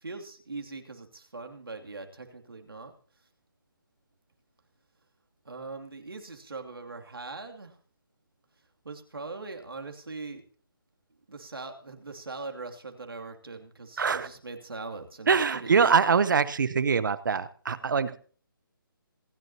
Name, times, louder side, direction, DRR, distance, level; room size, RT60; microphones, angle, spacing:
voice 1, 0.0-2.9 5.4-7.7 8.8-10.4 11.3-15.8, right 3 dB, 80° right, 4 dB, 2.6 m, -41 dB
voice 2, 14.0-14.3 15.3-18.2, right 5 dB, 60° right, 14 dB, 1.0 m, -24 dB
27.0 x 12.0 x 2.8 m, 0.43 s
figure-of-eight pair, 145°, 12 cm